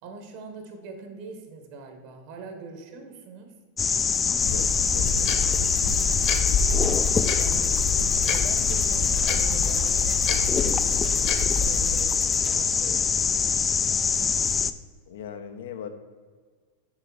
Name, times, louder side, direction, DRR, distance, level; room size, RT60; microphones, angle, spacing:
voice 1, 0.0-3.5 6.8-7.7 8.2-10.9 11.4-13.5, right 4 dB, 55° right, 4 dB, 1.5 m, -42 dB
sound 1, 3.8-14.7, left 6 dB, 20° left, 0.3 m, -24 dB
voice 2, 4.4-5.7 15.1-15.9, left 7 dB, 85° left, 7 dB, 0.8 m, -40 dB
sound 2, 4.4-12.0, left 4 dB, 45° left, 1.0 m, -29 dB
sound 3, 5.1-12.5, right 2 dB, 10° right, 0.7 m, -47 dB
6.7 x 3.8 x 6.0 m, 1.5 s
supercardioid pair, 125°, 0 cm